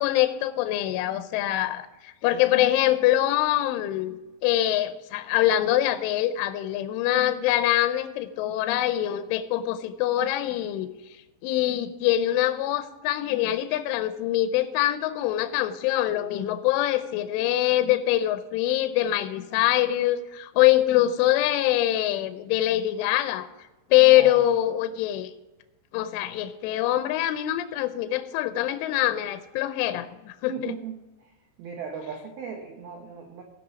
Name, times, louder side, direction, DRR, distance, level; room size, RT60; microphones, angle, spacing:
voice 1, 0.0-10.9 11.4-23.5 23.9-25.3 25.9-30.7, left 13 dB, 85° left, 11 dB, 2.9 m, -24 dB
voice 2, 24.1-24.4 30.5-31.3 31.6-33.4, right 6 dB, 90° right, 2 dB, 2.1 m, -37 dB
17.0 x 6.1 x 5.0 m, 1.1 s
omnidirectional pair, 6.0 m